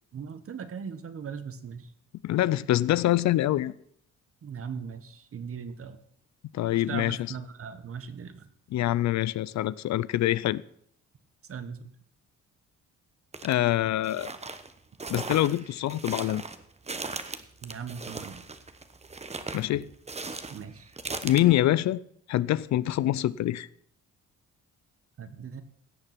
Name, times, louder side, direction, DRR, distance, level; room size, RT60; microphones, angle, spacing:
voice 1, 0.1-1.9 4.4-6.0 6.9-8.5 11.5-11.8 17.6-18.4 20.5-20.9 25.2-25.6, right 6 dB, 50° right, 1.3 m, -39 dB
voice 2, 2.2-3.7 6.5-7.2 8.7-10.6 13.4-14.3 15.1-16.4 19.5-19.9 21.2-22.0 22.3-23.7, left 14 dB, 65° left, 0.5 m, -25 dB
sound 1, 13.3-13.5 14.0-21.4, right 3 dB, 20° right, 1.0 m, -38 dB
17.0 x 6.7 x 6.0 m
cardioid pair, 90°, 30 cm